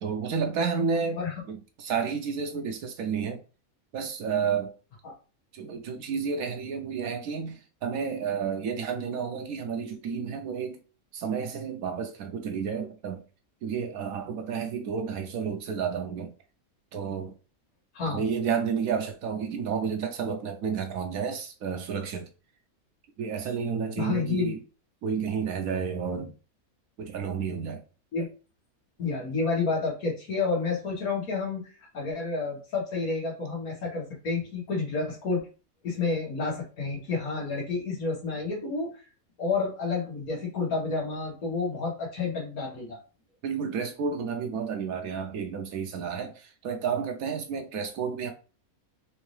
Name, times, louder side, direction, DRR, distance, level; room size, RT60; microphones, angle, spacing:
voice 1, 0.0-1.2 1.5-3.4 3.9-4.7 5.5-10.8 11.1-13.2 13.6-16.3 16.9-17.3 18.0-22.3 23.2-24.6 25.0-26.3 27.0-27.8 43.4-48.3, right 6 dB, 80° right, 1.1 m, -31 dB
voice 2, 24.0-24.5 28.1-28.3 29.0-35.5 35.8-39.1 39.4-43.0, left 4 dB, 85° left, 2.1 m, -30 dB
4.5 x 2.7 x 3.2 m
omnidirectional pair, 1.5 m